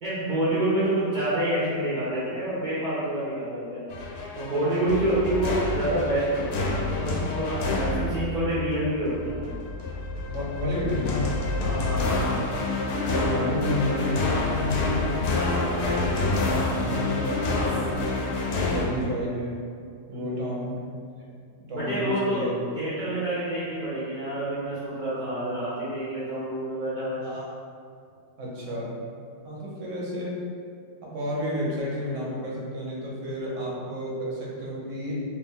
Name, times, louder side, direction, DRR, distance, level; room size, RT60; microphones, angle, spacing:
voice 1, 0.0-3.9 4.3-9.4 11.6-12.2 20.1-20.4 21.7-22.4 22.8-27.3, right 1 dB, 40° right, -10 dB, 0.7 m, -28 dB
sound 1, 3.9-18.9, left 2 dB, 75° left, 1.0 m, -28 dB
voice 2, 10.3-11.3 13.3-16.4 16.7-17.9 18.7-19.6 20.1-20.9 21.7-22.5 27.2-27.6 28.4-29.0 29.4-30.4 31.0-35.1, left 1 dB, 55° right, -5 dB, 1.0 m, -31 dB
3.1 x 2.6 x 3.6 m, 2.2 s
omnidirectional pair, 1.8 m